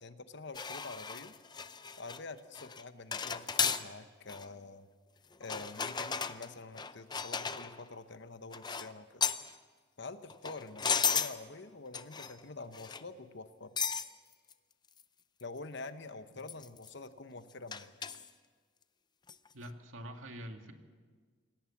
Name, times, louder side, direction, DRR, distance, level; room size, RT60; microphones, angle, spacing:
voice 1, 0.0-1.3 2.0-4.9 5.4-9.2 10.0-13.7 15.4-17.9, left 3 dB, 55° left, 11 dB, 1.0 m, -47 dB
sound 1, 0.5-2.2 2.5-2.8 3.1-3.9 4.3-4.5 5.4-7.8 8.5-8.9 9.2-9.5 10.3-11.4 11.9-12.4 12.7-13.1 13.8-14.1 14.5-14.6 15.0-15.1 15.4-15.5 16.5-16.9 17.7-18.3 19.3-19.5, left 6 dB, 20° left, 0.6 m, -35 dB
voice 2, 19.5-20.7, equal, 70° right, 5 dB, 2.2 m, -46 dB
27.0 x 17.5 x 7.3 m, 1.5 s
head